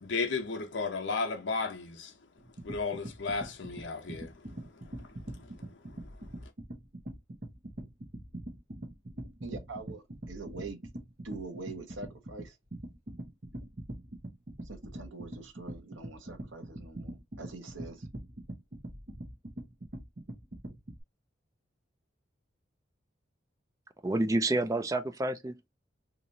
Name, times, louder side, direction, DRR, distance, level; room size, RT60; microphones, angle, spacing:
voice 1, 0.0-2.1 2.6-4.3 5.3-5.5 6.0-6.1, left 4 dB, 70° left, 0.7 m, -34 dB
sound 1, 2.4-21.0, right 1 dB, 45° right, 0.8 m, -43 dB
voice 2, 9.4-10.8 11.2-12.5 14.7-18.0, right 3 dB, 80° right, 0.9 m, -44 dB
voice 3, 24.0-25.7, right 2 dB, 15° right, 0.4 m, -29 dB
2.9 x 2.5 x 3.9 m
head